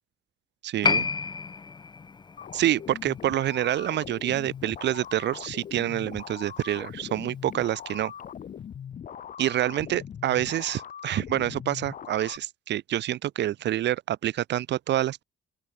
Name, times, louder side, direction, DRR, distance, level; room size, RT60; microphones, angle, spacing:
voice 1, 0.6-1.1 2.5-8.1 9.4-15.2, right 13 dB, 70° right, 3.1 m, -27 dB
Piano, 0.8-7.8 8.0-8.1, left 5 dB, 25° left, 1.8 m, -33 dB
sound 1, 2.4-12.4, left 8 dB, 45° left, 2.7 m, -41 dB
open air
cardioid pair, 145°, 18 cm